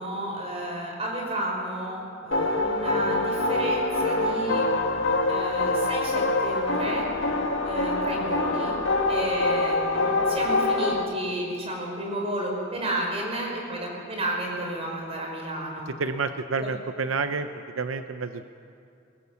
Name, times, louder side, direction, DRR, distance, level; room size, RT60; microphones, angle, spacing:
voice 1, 0.0-4.7 5.3-7.1 7.6-8.7 9.1-15.9 16.6-16.7, right 1 dB, 30° right, 0 dB, 4.7 m, -32 dB
sound 1, 2.3-11.0, left 2 dB, 70° left, 1.6 m, -25 dB
voice 2, 16.0-17.5 17.7-18.5, right 4 dB, 80° right, 9 dB, 0.7 m, -29 dB
23.5 x 18.5 x 7.1 m, 2.6 s
head